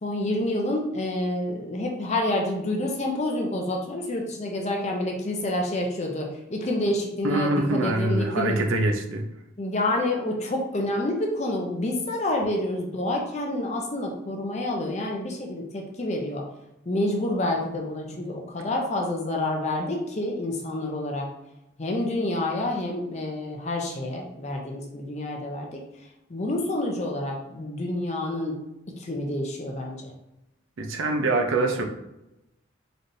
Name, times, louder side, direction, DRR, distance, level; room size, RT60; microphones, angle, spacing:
voice 1, 0.0-8.6 9.6-16.4 16.9-21.3 21.8-25.8 26.3-28.6 29.0-30.1, left 1 dB, 35° left, 0 dB, 0.5 m, -28 dB
voice 2, 7.2-9.3 30.8-31.8, right 2 dB, 75° right, 4 dB, 0.6 m, -24 dB
4.0 x 3.2 x 2.7 m, 0.91 s
head